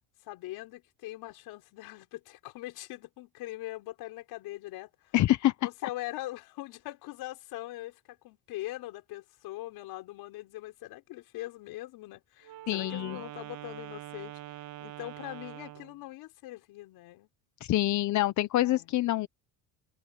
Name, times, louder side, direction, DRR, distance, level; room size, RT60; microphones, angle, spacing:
voice 1, 0.2-5.2 5.6-14.3 14.8-17.3 18.6-19.0, left 17 dB, 75° left, 4.7 m, -42 dB
voice 2, 5.1-5.7 12.7-13.2 17.6-19.3, left 15 dB, 50° left, 0.8 m, -26 dB
Wind instrument woodwind instrument, 12.4-16.0, right 15 dB, 65° right, 1.4 m, -44 dB
cardioid pair, 125°, 37 cm